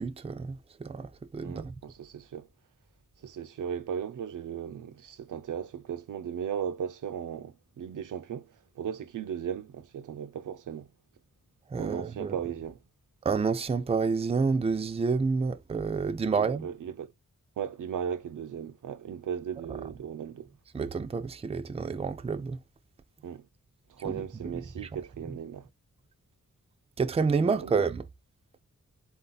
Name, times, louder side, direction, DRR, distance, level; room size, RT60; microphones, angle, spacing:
voice 1, 0.0-1.7 11.7-12.4 13.2-16.7 20.7-22.6 24.0-24.9 25.3-25.4 27.0-28.0, right 5 dB, 20° right, 0.4 m, -29 dB
voice 2, 1.4-2.5 3.2-10.9 11.7-12.8 16.3-17.1 17.6-20.5 23.2-23.5 23.9-25.7 27.4-27.8, right 8 dB, 80° right, 0.5 m, -37 dB
4.1 x 2.7 x 3.8 m
wide cardioid pair, 155°, 31 cm